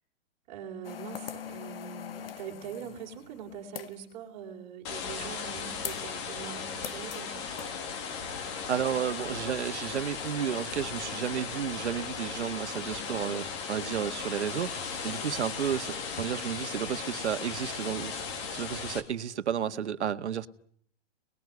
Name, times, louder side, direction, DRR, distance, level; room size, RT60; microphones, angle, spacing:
voice 1, 0.5-7.5 12.8-13.2 19.8-20.3, right 7 dB, 20° right, 1 dB, 3.7 m, -43 dB
sound 1, 0.8-4.1 5.8-6.1 6.8-7.2 7.6-7.7, left 9 dB, 50° left, 1.4 m, -42 dB
sound 2, 4.8-19.0, left 5 dB, 25° left, 2.2 m, -37 dB
voice 2, 8.4-18.2 18.5-20.5, right 9 dB, 70° right, 11 dB, 1.8 m, -32 dB
29.0 x 21.0 x 9.6 m, 0.66 s
hypercardioid pair, 175°, 36 cm